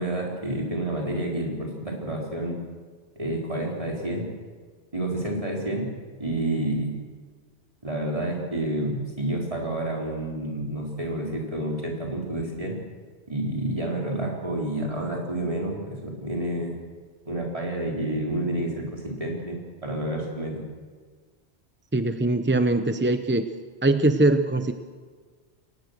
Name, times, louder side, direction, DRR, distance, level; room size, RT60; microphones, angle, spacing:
voice 1, 0.0-2.6 3.2-4.3 4.9-5.9 6.2-6.9 7.8-12.8 13.3-16.7 17.3-20.6, right 1 dB, 30° right, -1 dB, 4.1 m, -29 dB
voice 2, 21.9-23.4 23.8-24.7, right 2 dB, 15° right, 9 dB, 0.6 m, -22 dB
23.0 x 19.0 x 6.6 m, 1.5 s
omnidirectional pair, 1.1 m